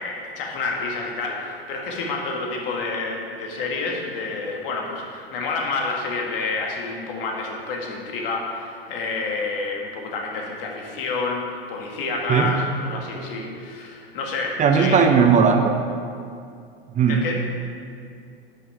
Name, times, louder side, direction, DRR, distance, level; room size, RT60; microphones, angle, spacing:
voice 1, 0.0-15.0 17.1-17.3, left 3 dB, 60° left, 0 dB, 2.0 m, -29 dB
voice 2, 14.6-15.7 16.9-17.3, right 6 dB, 25° right, 5 dB, 0.7 m, -17 dB
11.0 x 6.2 x 4.7 m, 2.4 s
hypercardioid pair, 90°, 31 cm